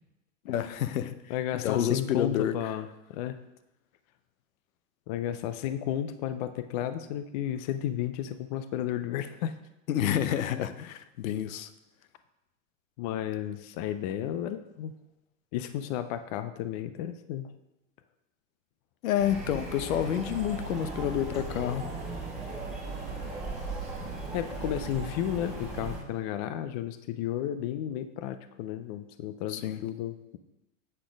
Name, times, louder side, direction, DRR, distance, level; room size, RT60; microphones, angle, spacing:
voice 1, 0.4-1.1 1.5-2.7 9.9-11.7 19.0-21.9 29.5-29.8, left 10 dB, 80° left, 12 dB, 0.8 m, -29 dB
voice 2, 1.3-3.4 5.1-9.5 13.0-14.9 15.5-17.5 24.3-30.4, left 11 dB, 30° left, 11 dB, 0.4 m, -33 dB
sound 1, 19.2-26.0, right 3 dB, ahead, 3.1 m, -37 dB
8.6 x 6.1 x 5.0 m, 0.92 s
supercardioid pair, 150°, 40 cm